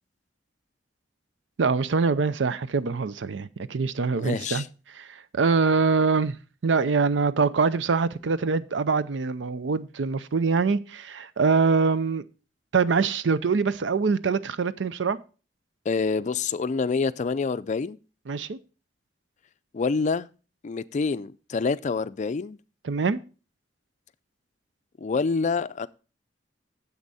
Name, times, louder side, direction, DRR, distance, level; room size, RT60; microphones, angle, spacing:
voice 1, 1.6-4.6 4.9-6.4 6.6-12.2 12.7-15.2 18.3-18.6 22.8-23.2, right 4 dB, 85° right, 0.5 m, -24 dB
voice 2, 4.2-4.7 15.9-18.0 19.7-20.3 20.6-22.6 25.0-25.9, left 4 dB, 40° left, 0.4 m, -27 dB
9.7 x 7.3 x 4.1 m
head